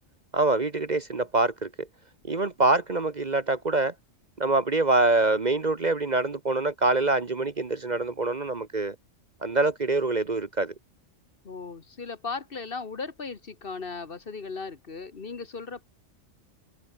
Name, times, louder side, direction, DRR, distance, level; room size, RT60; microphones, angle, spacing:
voice 1, 0.3-1.9 2.2-3.9 4.4-9.0 9.4-10.7, right 2 dB, 35° right, 1.2 m, -25 dB
voice 2, 11.4-15.9, left 4 dB, 45° left, 1.5 m, -37 dB
open air
omnidirectional pair, 1.3 m